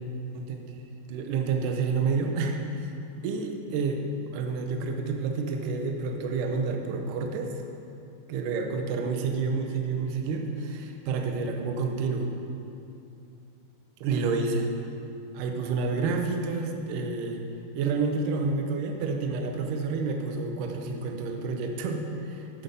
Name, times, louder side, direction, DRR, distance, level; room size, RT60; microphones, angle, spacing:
voice 1, 0.3-0.8 1.1-2.9 3.2-4.0 4.3-7.5 8.3-12.3 14.0-14.7 15.3-17.4 17.8-22.6, right 4 dB, 75° right, 3 dB, 1.9 m, -29 dB
10.5 x 5.5 x 6.7 m, 2.7 s
omnidirectional pair, 4.7 m